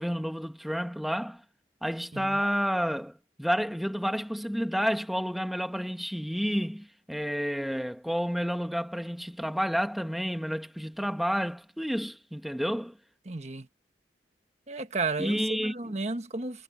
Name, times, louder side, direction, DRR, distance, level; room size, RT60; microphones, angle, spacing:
voice 1, 0.0-1.4 1.8-13.0 15.2-16.0, equal, ahead, 1.3 m, -30 dB
voice 2, 13.3-13.7 14.7-16.6, right 3 dB, 40° right, 1.3 m, -33 dB
head